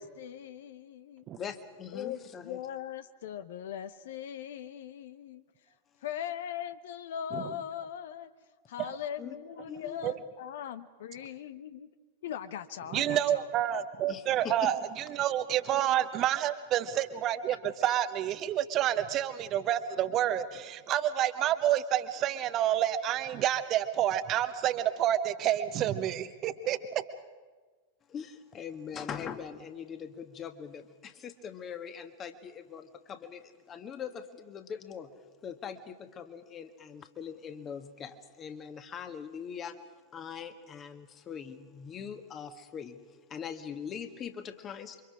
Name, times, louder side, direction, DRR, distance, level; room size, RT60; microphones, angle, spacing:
voice 1, 0.0-1.2 1.9-5.4 6.0-8.3 8.7-11.9 12.2-13.5, left 9 dB, 55° left, 12 dB, 0.9 m, -40 dB
voice 2, 1.4-2.6 9.2-9.4 9.7-10.0 14.1-14.7 17.8-18.0 28.1-35.2 35.4-39.8 40.1-45.0, left 7 dB, 25° left, 8 dB, 1.7 m, -42 dB
voice 3, 12.9-27.0, right 11 dB, 35° right, 11 dB, 1.1 m, -29 dB
28.5 x 24.5 x 4.9 m, 1.4 s
figure-of-eight pair, 90°, 0 cm